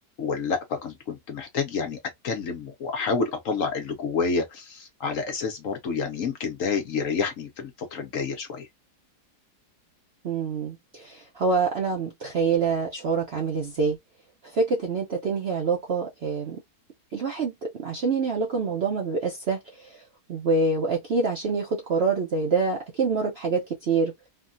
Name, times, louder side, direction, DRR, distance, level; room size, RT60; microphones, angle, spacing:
voice 1, 0.2-8.7, left 5 dB, 60° left, 1.1 m, -29 dB
voice 2, 10.2-14.0 14.4-16.6 17.1-20.0 20.3-24.1, right 4 dB, 60° right, 0.6 m, -26 dB
3.4 x 2.2 x 2.5 m
omnidirectional pair, 1.8 m